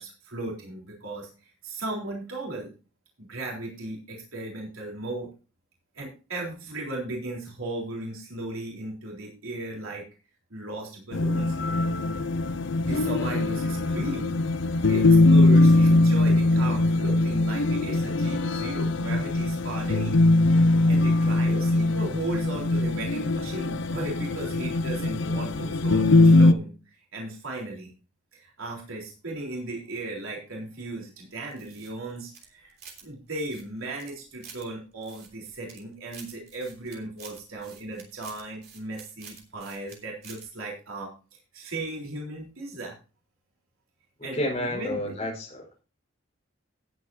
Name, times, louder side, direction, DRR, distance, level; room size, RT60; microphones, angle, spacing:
voice 1, 0.0-2.7 3.2-5.3 5.9-10.1 10.5-11.6 12.8-14.3 14.8-20.2 20.9-27.9 28.3-32.8 33.0-42.9 44.2-45.2, right 2 dB, 85° right, -2 dB, 3.9 m, -36 dB
sound 1, 11.1-26.5, left 2 dB, 60° left, 0.7 m, -21 dB
sound 2, 31.5-33.1 33.3-34.6 35.0-35.8 36.1-40.0 40.2-40.5, right 6 dB, 50° right, 3.2 m, -48 dB
voice 2, 44.3-45.8, left 1 dB, 30° left, -1 dB, 4.9 m, -30 dB
18.0 x 8.4 x 2.8 m, 0.34 s
head